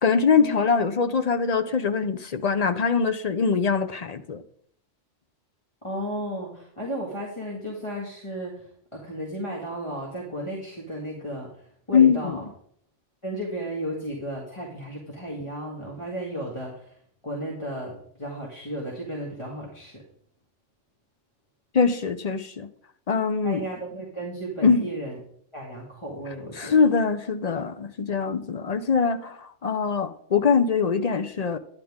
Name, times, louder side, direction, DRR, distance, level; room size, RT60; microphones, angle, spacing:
voice 1, 0.0-4.4 11.9-12.4 21.7-22.7 23.1-23.6 24.6-24.9 26.6-31.6, left 5 dB, 50° left, 8 dB, 0.5 m, -23 dB
voice 2, 5.8-8.7 8.9-11.5 11.9-12.4 13.2-17.0 17.2-20.0 23.4-25.2 25.5-26.7, right 1 dB, 25° left, -3 dB, 1.9 m, -34 dB
10.5 x 10.5 x 3.6 m, 0.64 s
omnidirectional pair, 1.3 m